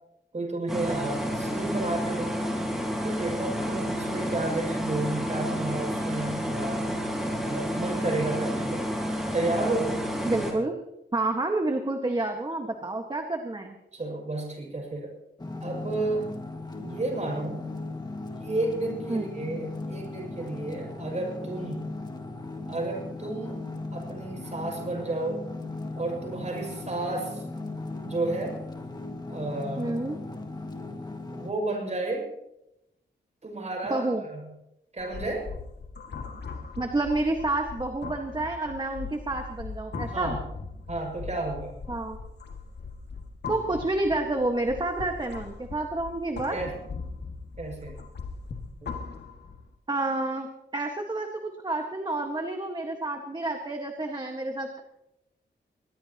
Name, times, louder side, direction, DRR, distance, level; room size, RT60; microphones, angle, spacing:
voice 1, 0.3-2.4 3.0-6.9 7.4-8.9 9.3-10.0 13.9-15.1 15.6-16.3 16.8-17.7 18.4-21.9 22.7-23.6 23.9-25.5 25.9-27.4 28.0-28.6 29.3-30.0 31.3-32.3 33.4-34.5 34.9-35.5 40.1-40.5 40.9-41.7 46.5-46.8 47.6-48.0, right 2 dB, 40° right, 0 dB, 6.2 m, -32 dB
sound 1, 0.7-10.5, equal, ahead, 4.5 m, -30 dB
voice 2, 10.2-10.7 11.1-13.7 19.1-19.2 29.8-30.2 33.9-34.2 36.8-40.3 41.9-42.2 43.5-46.6 49.9-50.5 50.7-54.8, right 2 dB, 25° right, 3 dB, 1.6 m, -29 dB
sound 2, 15.4-31.5, left 2 dB, 20° left, 1.8 m, -37 dB
sound 3, 35.0-49.7, left 4 dB, 65° left, 2.1 m, -39 dB
23.5 x 20.5 x 3.0 m, 0.86 s
wide cardioid pair, 145°, 19 cm